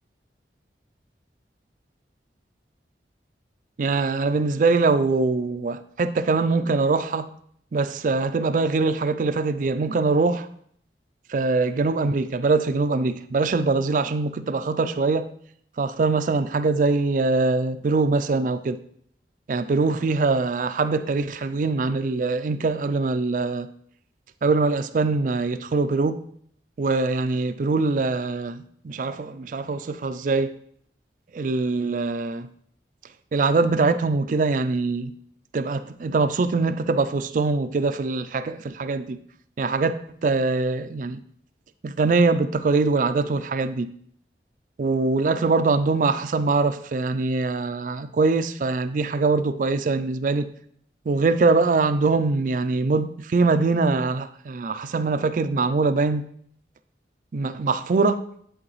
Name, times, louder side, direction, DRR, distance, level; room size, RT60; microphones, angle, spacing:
voice 1, 3.8-7.3 7.7-10.5 11.3-15.3 15.8-18.8 19.5-23.7 24.4-26.2 26.8-30.6 31.3-32.5 33.3-35.1 35.5-39.2 39.6-41.2 41.8-43.9 44.8-50.5 51.1-56.3 57.3-58.2, right 3 dB, 45° right, 0.3 m, -23 dB
10.0 x 3.9 x 3.1 m
head